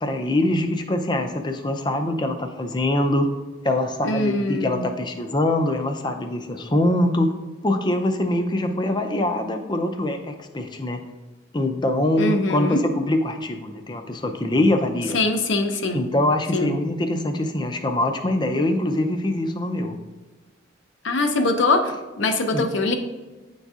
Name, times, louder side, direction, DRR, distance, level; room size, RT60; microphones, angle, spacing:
voice 1, 0.0-3.3 3.6-7.3 7.6-11.0 11.5-15.2 15.9-20.0 22.5-22.7, left 1 dB, 25° left, 6 dB, 0.4 m, -23 dB
voice 2, 4.0-4.8 12.2-12.8 15.1-16.1 16.5-16.7 21.0-22.9, left 2 dB, 75° left, 5 dB, 0.6 m, -22 dB
9.9 x 4.0 x 2.4 m, 1.2 s
head